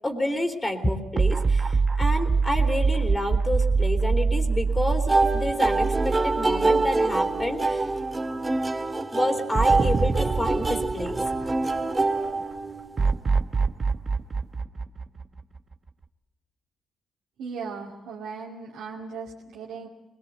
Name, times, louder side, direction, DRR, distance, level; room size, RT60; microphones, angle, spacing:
voice 1, 0.0-7.9 9.1-11.3, left 1 dB, 25° left, 4 dB, 3.1 m, -29 dB
sound 1, 1.2-7.5 7.9-8.0 9.5-12.0 13.0-15.7, right 4 dB, 45° right, 1.1 m, -25 dB
sound 2, 5.1-13.0, right 3 dB, 30° right, 2.0 m, -25 dB
voice 2, 17.4-19.9, right 5 dB, 75° right, -3 dB, 2.5 m, -37 dB
22.5 x 20.5 x 8.0 m, 1.1 s
supercardioid pair, 50°, 0 cm